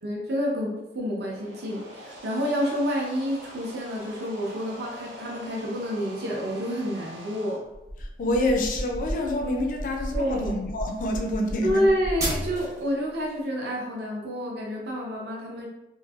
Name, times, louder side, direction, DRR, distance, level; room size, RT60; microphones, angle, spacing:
voice 1, 0.0-7.6 10.1-10.5 11.6-15.7, equal, 55° right, -2 dB, 0.6 m, -28 dB
sound 1, 1.1-7.6, equal, 90° right, 0.9 m, -44 dB
sound 2, 7.7-12.9, equal, 20° right, 0.7 m, -33 dB
voice 2, 8.0-11.9, left 1 dB, 45° left, 2 dB, 0.3 m, -27 dB
3.0 x 2.6 x 2.4 m, 0.97 s
head